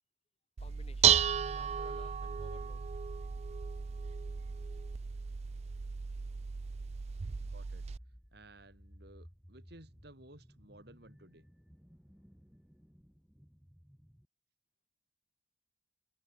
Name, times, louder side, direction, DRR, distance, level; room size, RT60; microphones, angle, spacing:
voice 1, 0.6-2.8, left 2 dB, 35° left, 4.1 m, -57 dB
Dishes pots and pans, 0.6-8.0, right 8 dB, 35° right, 0.3 m, -33 dB
voice 2, 7.0-7.8 8.3-11.5, right 1 dB, 60° right, 5.9 m, -57 dB
sound 1, 7.4-14.3, equal, 5° right, 2.0 m, -58 dB
head